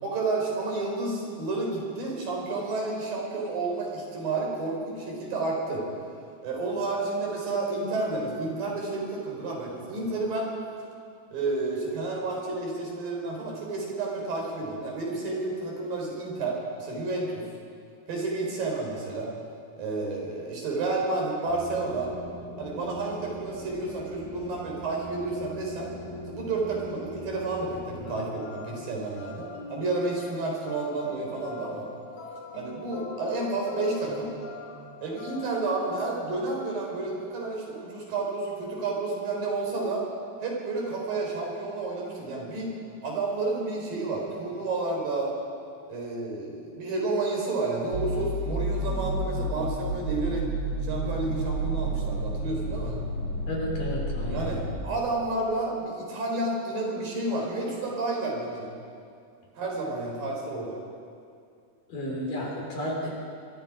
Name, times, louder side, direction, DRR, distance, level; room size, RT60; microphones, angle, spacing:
voice 1, 0.0-5.9 6.4-10.5 11.3-17.5 18.1-19.3 19.8-22.1 22.6-25.9 26.3-31.9 32.5-34.3 35.0-40.0 40.4-42.7 43.0-45.3 45.9-50.5 50.8-53.0 54.3-58.7 59.6-60.8, right 3 dB, 70° right, -1 dB, 6.0 m, -30 dB
sound 1, 21.5-28.1, equal, 10° left, 5.5 m, -41 dB
sound 2, 28.0-36.2, left 3 dB, 50° left, 2.6 m, -43 dB
sound 3, 47.9-54.8, right 1 dB, 40° right, 4.1 m, -30 dB
voice 2, 53.5-54.5 61.9-63.1, equal, 65° left, -2 dB, 6.0 m, -32 dB
25.5 x 22.5 x 5.0 m, 2.3 s
omnidirectional pair, 4.1 m